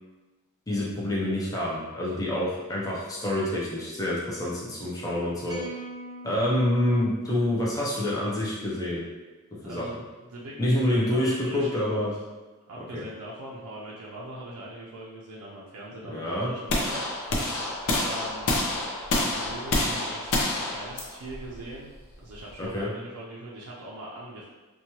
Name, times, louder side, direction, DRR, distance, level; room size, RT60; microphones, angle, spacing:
voice 1, 0.7-5.6 6.2-9.1 9.7-9.8 10.6-12.1 12.9-13.0 16.0-16.5 22.6-22.9, left 1 dB, 15° left, -6 dB, 0.4 m, -27 dB
sound 1, 5.5-7.9, right 2 dB, 15° right, 0.9 m, -42 dB
voice 2, 9.6-10.0 10.3-12.0 12.7-17.4 18.0-21.9 22.2-24.5, right 1 dB, 80° right, -5 dB, 0.4 m, -41 dB
sound 2, 16.7-22.8, left 2 dB, 65° left, 0.5 m, -28 dB
2.8 x 2.2 x 2.9 m, 1.2 s
head